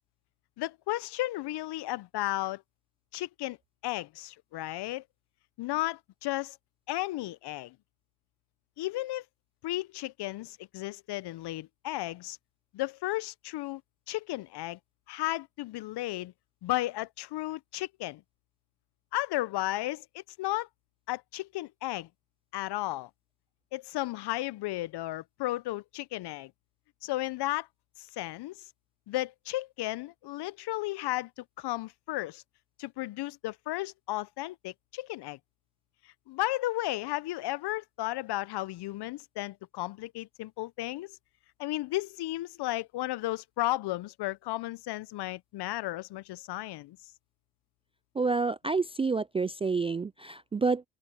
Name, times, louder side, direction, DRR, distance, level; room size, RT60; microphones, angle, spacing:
voice 1, 0.6-2.6 3.1-3.6 3.8-5.0 5.6-6.6 6.9-7.8 8.8-9.2 9.6-12.4 12.7-13.8 14.1-14.8 15.1-16.3 16.6-18.2 19.1-20.7 21.1-22.1 22.5-23.1 23.7-26.5 27.0-27.7 28.0-28.5 29.1-32.4 32.8-35.4 36.3-41.2 41.6-47.0, left 17 dB, 60° left, 0.8 m, -34 dB
voice 2, 48.2-50.8, right 4 dB, 15° right, 0.3 m, -28 dB
open air
hypercardioid pair, 65°, 46 cm